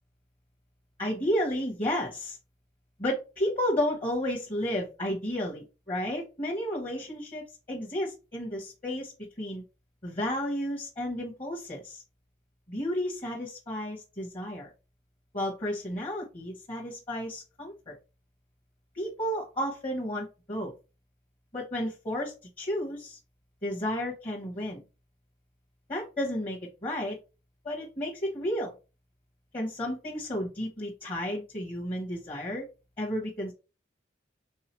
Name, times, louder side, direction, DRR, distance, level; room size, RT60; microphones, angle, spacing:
voice 1, 1.0-2.4 3.0-9.1 9.4-9.6 10.0-12.0 12.7-14.7 15.3-18.0 18.9-20.7 21.5-23.2 23.6-24.8 25.9-27.2 27.6-28.7 29.5-32.7 33.0-33.5, equal, 30° left, -2 dB, 1.0 m, -32 dB
4.7 x 3.6 x 3.0 m, 0.31 s
head